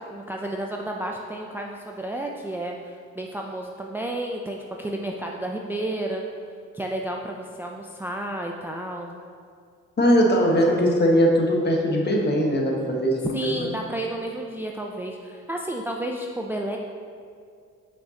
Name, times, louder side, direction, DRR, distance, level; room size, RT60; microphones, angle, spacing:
voice 1, 0.0-6.2 6.7-9.1 13.3-16.8, right 1 dB, 5° right, 0 dB, 0.4 m, -31 dB
voice 2, 10.0-13.7, equal, 35° left, 0 dB, 1.3 m, -20 dB
8.3 x 5.6 x 2.9 m, 2.2 s
cardioid pair, 90°, 30 cm